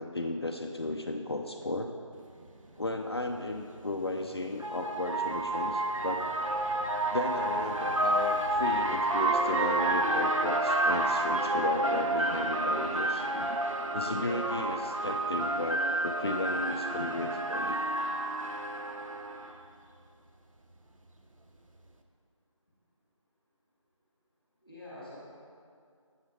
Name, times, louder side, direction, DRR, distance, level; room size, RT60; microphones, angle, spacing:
voice 1, 0.0-1.9 2.8-6.3 7.1-13.6 13.9-17.8, left 2 dB, 50° left, 4 dB, 0.4 m, -35 dB
sound 1, 2.4-2.5 3.9-19.5, right 1 dB, 75° right, 0.7 m, -30 dB
voice 2, 24.6-25.2, left 1 dB, ahead, -18 dB, 0.7 m, -47 dB
7.9 x 6.8 x 3.1 m, 2.3 s
figure-of-eight pair, 175°, 17 cm